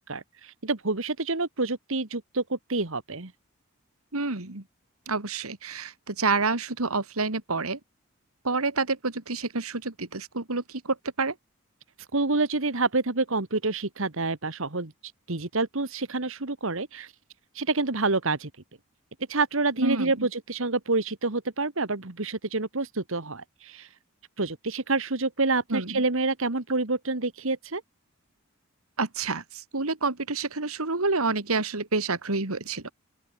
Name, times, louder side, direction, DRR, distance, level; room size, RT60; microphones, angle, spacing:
voice 1, 0.0-3.3 12.1-14.9 15.3-17.1 17.5-18.5 19.3-23.9 24.4-27.8, right 3 dB, 65° right, 1.8 m, -28 dB
voice 2, 4.1-4.6 5.1-7.8 8.4-11.3 19.8-20.3 25.7-26.0 29.0-32.9, right 3 dB, 85° right, 2.5 m, -28 dB
open air
head